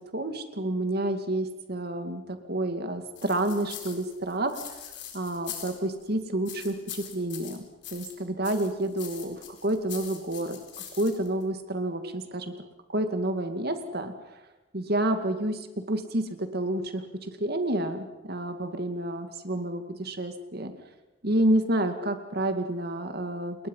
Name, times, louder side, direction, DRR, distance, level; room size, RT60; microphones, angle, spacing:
voice 1, 0.1-4.6 5.1-7.6 7.9-10.6 11.0-12.5 12.9-14.4 14.7-20.7 21.2-23.7, right 1 dB, 55° right, 7 dB, 2.3 m, -29 dB
sound 1, 3.2-6.1 6.5-8.2 8.4-11.4, left 9 dB, 65° left, 4.2 m, -42 dB
29.5 x 21.0 x 5.6 m, 1.0 s
head